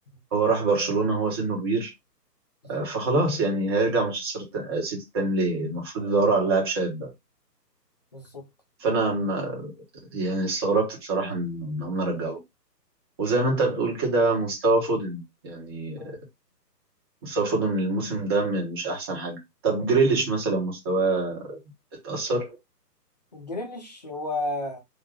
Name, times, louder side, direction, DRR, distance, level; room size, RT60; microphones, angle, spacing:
voice 1, 0.3-1.9 2.7-7.1 8.8-9.7 10.1-12.4 13.2-16.2 17.2-19.4 19.6-21.6 22.0-22.6, right 3 dB, 15° right, 0.8 m, -25 dB
voice 2, 8.1-8.4 16.0-16.1 23.3-24.8, left 2 dB, 25° left, 0.5 m, -33 dB
3.8 x 2.1 x 3.3 m
figure-of-eight pair, 140°, 50 cm